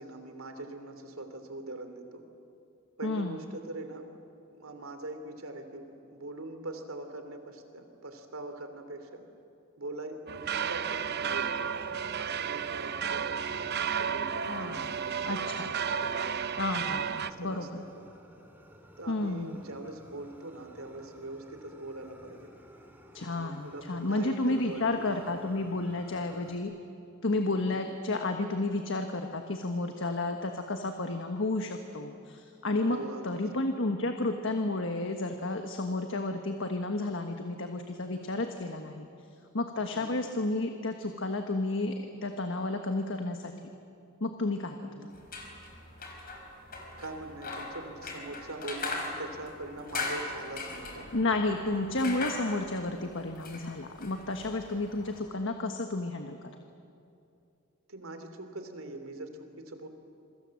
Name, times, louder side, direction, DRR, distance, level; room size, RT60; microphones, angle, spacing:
voice 1, 0.0-2.2 3.0-4.1 4.5-9.2 9.8-11.7 12.2-16.5 17.2-17.7 17.9-18.1 19.0-22.5 23.2-25.5 25.8-26.4 27.4-27.8 32.9-33.5 39.9-40.2 45.0-45.1 46.9-51.1 57.9-59.9, right 2 dB, 85° right, 7 dB, 3.0 m, -42 dB
voice 2, 3.0-3.4 14.5-14.9 15.2-15.7 16.6-17.8 19.1-19.6 23.1-26.7 27.2-39.1 39.5-43.5 44.2-45.1 51.1-56.5, left 2 dB, 65° left, 5 dB, 1.4 m, -32 dB
sound 1, 10.3-17.3, right 7 dB, 50° right, 0.8 m, -32 dB
Fire, 11.6-26.6, right 1 dB, 10° right, 2.6 m, -55 dB
sound 2, 45.1-55.2, left 3 dB, 45° left, 4.8 m, -40 dB
27.5 x 24.0 x 7.7 m, 2.6 s
head